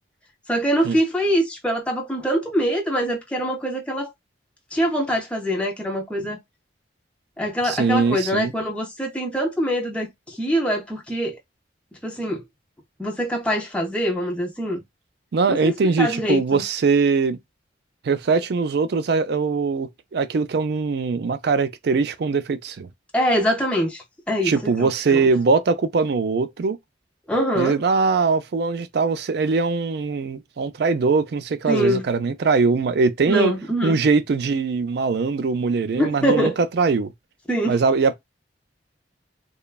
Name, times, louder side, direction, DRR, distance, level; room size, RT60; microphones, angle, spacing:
voice 1, 0.5-4.1 4.7-6.4 7.4-11.4 12.0-12.4 13.0-14.8 15.5-16.6 23.1-25.3 27.3-27.8 31.7-32.1 33.3-34.0 36.0-36.6 37.5-37.8, equal, 5° left, 0.4 m, -24 dB
voice 2, 7.6-8.5 15.3-17.4 18.0-22.9 24.4-26.8 27.6-33.5 33.8-37.1 37.7-38.2, right 4 dB, 60° right, 0.4 m, -21 dB
3.0 x 2.2 x 2.2 m
head